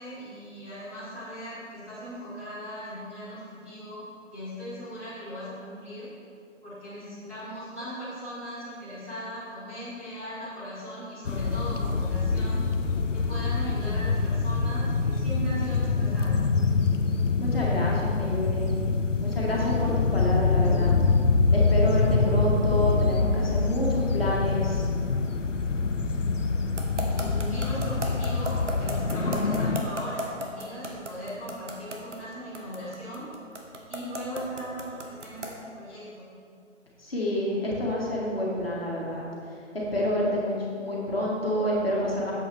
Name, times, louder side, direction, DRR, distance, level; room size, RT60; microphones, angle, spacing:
voice 1, 0.0-4.0 4.3-6.1 6.6-12.7 13.1-16.5 27.1-33.3 33.9-36.2, equal, 10° right, -17 dB, 1.4 m, -38 dB
sound 1, 11.2-29.8, left 4 dB, 70° left, 0.7 m, -25 dB
voice 2, 17.4-18.7 19.2-20.9 21.5-24.9 37.0-39.2 39.7-42.3, left 1 dB, 50° left, -5 dB, 1.9 m, -28 dB
sound 2, 26.8-35.6, right 1 dB, 65° right, 1.3 m, -34 dB
8.9 x 7.7 x 3.5 m, 2.4 s
figure-of-eight pair, 175°, 38 cm